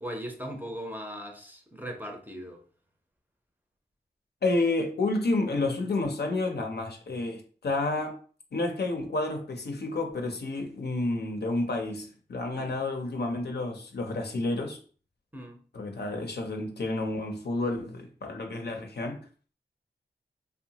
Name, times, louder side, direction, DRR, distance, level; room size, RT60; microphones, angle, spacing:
voice 1, 0.0-2.6 12.5-12.8 15.3-15.6, equal, 10° right, 0.6 m, -39 dB
voice 2, 4.4-8.2 8.5-14.8 15.7-19.2, left 2 dB, 65° left, 0.6 m, -30 dB
2.8 x 2.1 x 2.8 m
cardioid pair, 45°, 18 cm